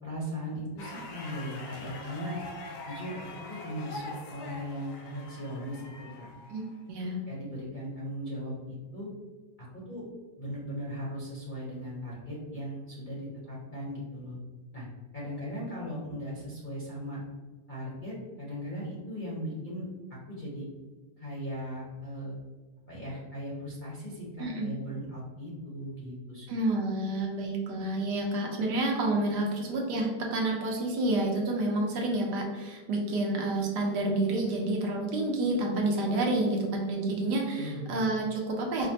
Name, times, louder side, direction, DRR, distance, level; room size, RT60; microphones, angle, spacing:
voice 1, 0.0-2.4 2.9-6.3 7.3-9.1 9.6-10.0 10.4-14.4 14.7-14.8 15.1-17.2 17.7-19.8 20.1-20.7 21.2-22.3 22.9-26.5 37.6-38.0, equal, 40° left, -7 dB, 0.7 m, -38 dB
sound 1, 0.8-6.9, left 2 dB, 70° left, 1.0 m, -44 dB
voice 2, 6.9-7.2 24.4-24.7 26.5-38.9, right 2 dB, 70° right, 0 dB, 1.3 m, -29 dB
5.0 x 2.0 x 2.7 m, 1.4 s
omnidirectional pair, 1.9 m